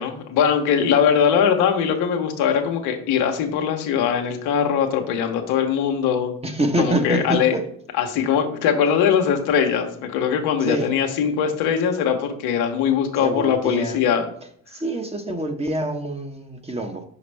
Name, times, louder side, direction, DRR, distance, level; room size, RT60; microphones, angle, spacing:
voice 1, 0.0-6.3 6.8-7.5 8.0-14.2, left 7 dB, 80° left, 4 dB, 1.1 m, -21 dB
voice 2, 6.4-7.6 10.6-10.9 13.2-14.0 14.7-17.0, right 1 dB, 15° right, 5 dB, 1.1 m, -25 dB
5.8 x 5.1 x 3.4 m, 0.62 s
supercardioid pair, 65°, 38 cm